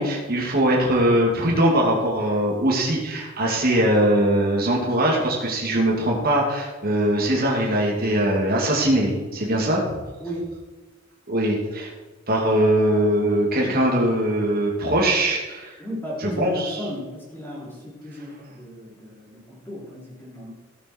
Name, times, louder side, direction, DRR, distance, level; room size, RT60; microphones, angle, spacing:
voice 1, 0.0-9.9 11.3-11.9 12.3-15.7 16.2-16.8, right 1 dB, 50° right, -2 dB, 2.6 m, -21 dB
voice 2, 10.2-10.5 15.8-20.5, equal, 10° left, -5 dB, 3.9 m, -35 dB
17.0 x 6.9 x 4.6 m, 1.2 s
head